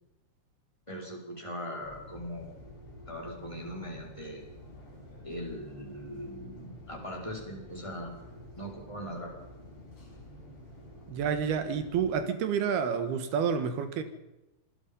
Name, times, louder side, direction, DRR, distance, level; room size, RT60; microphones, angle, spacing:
voice 1, 0.9-2.6 3.1-4.4 5.2-8.2 8.6-9.3, equal, 5° left, 4.6 m, -40 dB
sound 1, 1.8-12.2, left 1 dB, 30° left, 6.1 m, -49 dB
voice 2, 11.1-14.0, right 7 dB, 65° right, 3.1 m, -29 dB
26.5 x 21.0 x 5.5 m
omnidirectional pair, 5.7 m